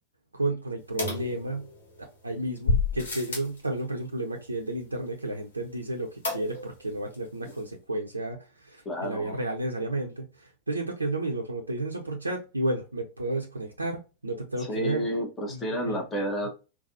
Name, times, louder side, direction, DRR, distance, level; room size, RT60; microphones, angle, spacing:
voice 1, 0.3-1.6 2.2-15.0 15.5-16.0 16.4-16.5, right 2 dB, 80° right, 0.5 m, -32 dB
sound 1, 1.0-2.0 2.6-3.6 6.2-6.8 7.1-7.2 7.5-7.6, left 3 dB, 60° left, 1.3 m, -29 dB
voice 2, 8.8-9.4 14.6-16.5, equal, 15° left, 1.1 m, -31 dB
3.9 x 2.3 x 2.6 m
figure-of-eight pair, 90°, 0 cm